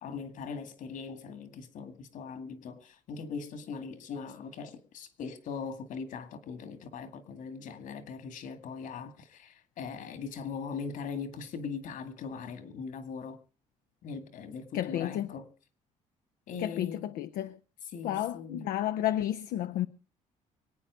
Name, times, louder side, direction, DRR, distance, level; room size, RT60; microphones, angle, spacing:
voice 1, 0.0-13.4 14.0-15.5 16.5-17.1 17.9-18.7, left 5 dB, 70° left, 2.1 m, -40 dB
voice 2, 14.7-15.3 16.6-17.6 18.0-19.9, left 12 dB, 90° left, 0.7 m, -31 dB
24.0 x 9.0 x 5.0 m
cardioid pair, 110°, 14 cm